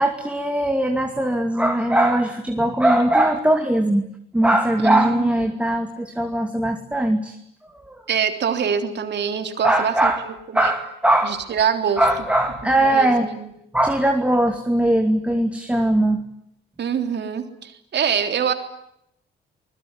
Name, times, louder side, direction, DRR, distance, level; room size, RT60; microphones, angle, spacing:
voice 1, 0.0-4.0 4.3-7.4 7.8-7.9 9.6-10.2 10.5-11.4 12.0-13.3 13.7-16.2, right 1 dB, 5° right, 4 dB, 2.5 m, -20 dB
voice 2, 4.8-5.3 8.1-10.7 11.2-12.0 12.8-13.5 16.8-18.5, right 7 dB, 60° right, 6 dB, 3.5 m, -24 dB
25.5 x 21.0 x 9.8 m, 0.76 s
cardioid pair, 90°, 20 cm